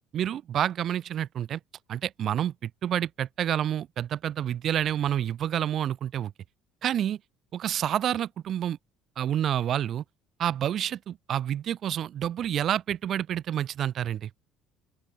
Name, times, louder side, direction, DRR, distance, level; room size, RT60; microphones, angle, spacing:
voice 1, 0.1-1.6 1.9-6.3 6.8-7.2 7.5-8.8 9.2-10.0 10.4-14.3, right 10 dB, 55° right, 1.8 m, -28 dB
open air
supercardioid pair, 90°, 0 cm